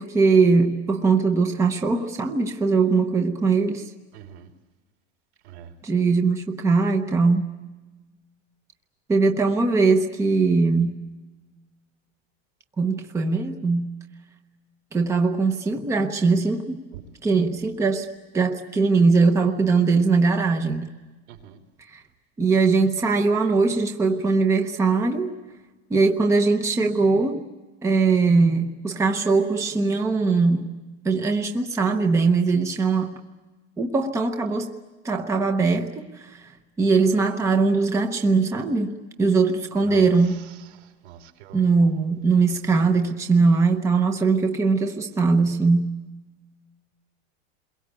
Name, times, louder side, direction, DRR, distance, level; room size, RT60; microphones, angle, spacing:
voice 1, 0.0-3.8 5.8-7.4 9.1-10.9 12.8-13.9 14.9-16.8 17.2-18.1 18.3-20.9 21.9-22.0 22.4-25.3 25.9-27.4 27.8-30.7 31.0-33.1 33.8-34.7 35.0-36.4 36.8-38.9 39.2-40.4 41.5-45.8, right 4 dB, 10° right, 4 dB, 0.9 m, -21 dB
voice 2, 4.1-4.5 5.4-5.7 16.9-17.0 21.3-21.6 39.8-40.1 40.8-41.6, right 11 dB, 75° right, 5 dB, 3.6 m, -43 dB
28.5 x 22.5 x 8.2 m, 1.2 s
supercardioid pair, 180°, 33 cm